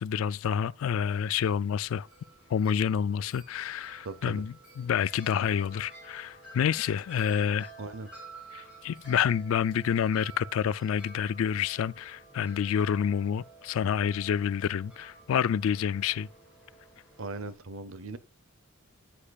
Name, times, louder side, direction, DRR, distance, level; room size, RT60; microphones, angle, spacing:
voice 1, 0.0-2.1 2.5-7.7 8.5-16.3, left 8 dB, 65° left, 0.3 m, -28 dB
Wind chime, 1.1-17.5, right 2 dB, 5° right, 4.0 m, -51 dB
voice 2, 4.0-4.4 7.8-8.1 17.2-18.2, right 3 dB, 65° right, 0.8 m, -38 dB
9.8 x 8.7 x 2.3 m
head